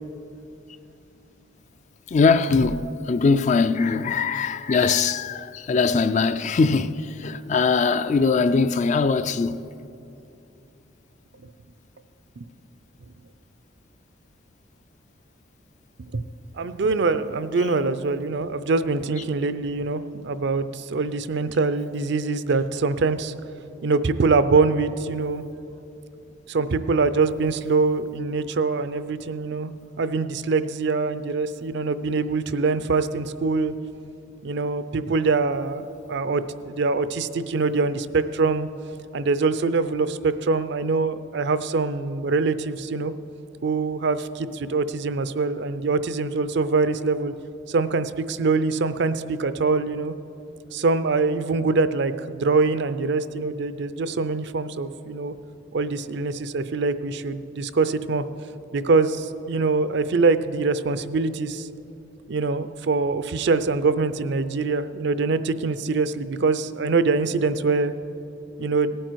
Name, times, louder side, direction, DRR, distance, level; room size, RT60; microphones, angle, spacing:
voice 1, 2.1-9.7, left 4 dB, 40° left, 0.4 m, -21 dB
voice 2, 16.5-23.3 23.8-25.4 26.5-33.7 34.4-38.7 39.1-43.1 43.6-47.3 47.7-50.2 50.7-55.3 55.7-58.3 58.7-61.7 62.3-67.9 68.6-69.0, right 4 dB, 60° right, 0.5 m, -24 dB
18.0 x 9.0 x 4.6 m
head